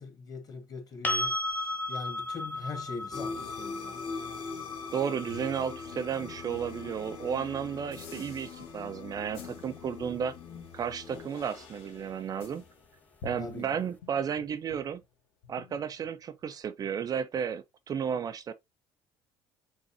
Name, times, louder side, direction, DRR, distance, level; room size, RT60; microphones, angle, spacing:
voice 1, 0.0-4.0 13.4-13.8, left 4 dB, 35° left, 1.5 m, -42 dB
sound 1, 1.0-8.9 11.7-11.8, left 1 dB, 15° left, 0.7 m, -37 dB
sound 2, 3.1-11.3, left 5 dB, 55° left, 1.3 m, -42 dB
voice 2, 4.9-10.3 10.7-12.6 13.2-15.0 15.5-18.5, right 7 dB, 40° right, 0.4 m, -33 dB
sound 3, 6.5-15.1 15.4-16.5, left 5 dB, 80° left, 1.5 m, -52 dB
5.3 x 3.5 x 2.7 m
cardioid pair, 115°, 10 cm